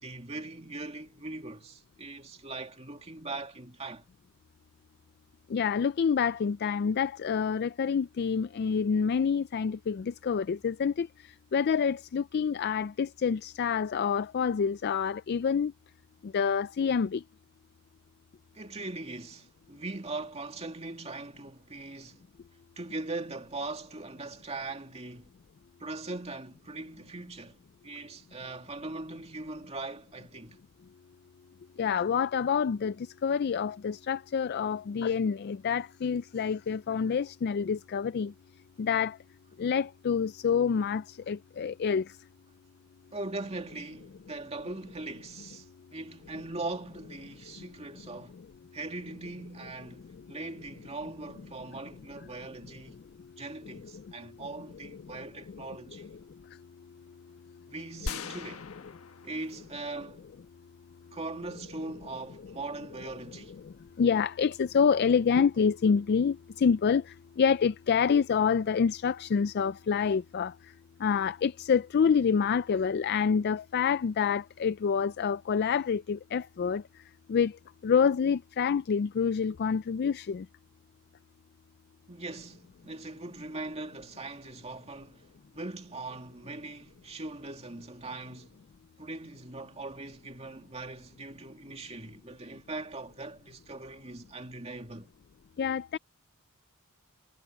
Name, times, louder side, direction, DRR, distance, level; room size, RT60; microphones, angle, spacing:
voice 1, 0.0-4.0 18.5-22.2 22.8-25.3 25.8-30.6 43.1-48.4 48.7-53.0 53.4-56.2 57.7-58.7 59.2-60.2 61.1-63.6 82.1-88.6 89.0-95.1, right 2 dB, 30° right, 2.4 m, -40 dB
voice 2, 5.5-15.7 16.2-17.2 31.8-38.3 38.8-39.2 39.6-42.2 48.3-48.4 50.0-50.2 53.7-54.1 54.9-55.2 55.5-55.6 55.9-56.1 58.3-58.4 63.6-70.5 71.0-76.8 77.3-77.6 77.8-80.5 95.6-96.0, left 6 dB, 45° left, 0.3 m, -27 dB
sound 1, 58.1-60.0 60.3-60.4, left 4 dB, 75° left, 1.3 m, -40 dB
head